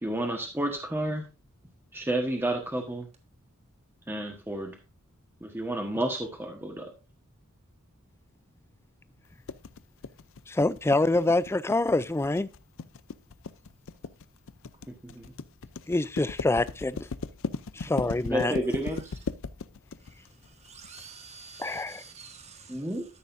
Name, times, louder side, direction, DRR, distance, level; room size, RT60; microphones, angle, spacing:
voice 1, 0.0-1.2 1.9-3.1 4.1-4.8 5.4-6.9 14.9-15.3 18.0-19.0 22.7-23.1, right 1 dB, 10° right, 1.3 m, -31 dB
sound 1, 9.5-21.0, left 4 dB, 65° left, 0.5 m, -37 dB
voice 2, 10.5-12.5 15.9-17.0 17.8-18.6 21.6-22.0, left 2 dB, 10° left, 0.4 m, -26 dB
voice 3, 20.6-22.9, right 5 dB, 30° right, 1.5 m, -48 dB
13.0 x 6.6 x 2.6 m
head